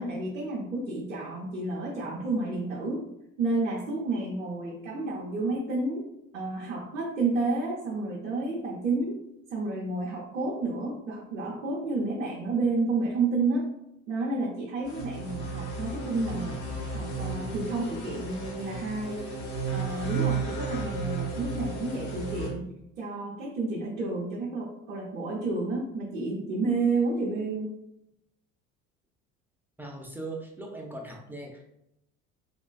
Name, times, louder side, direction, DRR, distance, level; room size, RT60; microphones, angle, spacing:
voice 1, 0.0-3.0 3.4-6.0 6.3-9.2 9.5-13.6 14.1-16.6 16.9-19.2 19.7-27.7, right 3 dB, 80° right, -5 dB, 0.8 m, -30 dB
sound 1, 14.8-22.5, right 3 dB, 65° left, 0.9 m, -33 dB
voice 2, 29.8-31.7, right 2 dB, 5° right, 0 dB, 0.5 m, -39 dB
3.0 x 2.6 x 2.2 m, 0.81 s
figure-of-eight pair, 60°, 38 cm